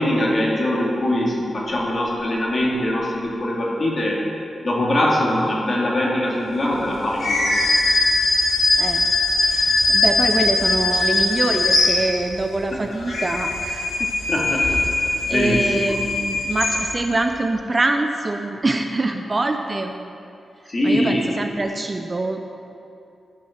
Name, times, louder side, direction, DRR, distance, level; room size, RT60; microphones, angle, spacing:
voice 1, 0.0-4.2 4.6-7.6 14.3-15.9 20.7-21.3, left 1 dB, 35° left, -3 dB, 2.1 m, -22 dB
sound 1, 7.2-12.5 12.9-17.2, left 2 dB, 90° left, 1.4 m, -20 dB
voice 2, 9.5-14.1 14.6-14.7 15.3-20.2 20.8-22.4, right 2 dB, 25° right, 5 dB, 0.5 m, -24 dB
11.0 x 7.6 x 5.8 m, 2.6 s
wide cardioid pair, 140°, 0 cm